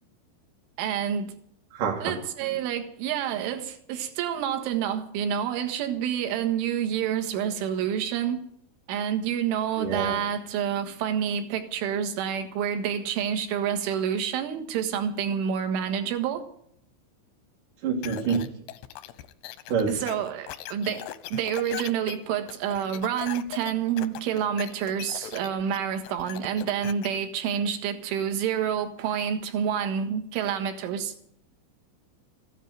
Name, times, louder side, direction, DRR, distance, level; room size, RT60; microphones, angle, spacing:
voice 1, 0.8-1.3 2.0-8.4 8.9-16.5 19.9-31.1, right 8 dB, 80° right, 7 dB, 4.0 m, -28 dB
voice 2, 1.7-2.1 9.8-10.2 17.8-18.4 19.7-20.0, right 6 dB, 55° right, -2 dB, 2.7 m, -27 dB
sound 1, 18.0-27.1, left 14 dB, 80° left, 2.3 m, -39 dB
15.5 x 10.0 x 9.3 m, 0.68 s
omnidirectional pair, 5.6 m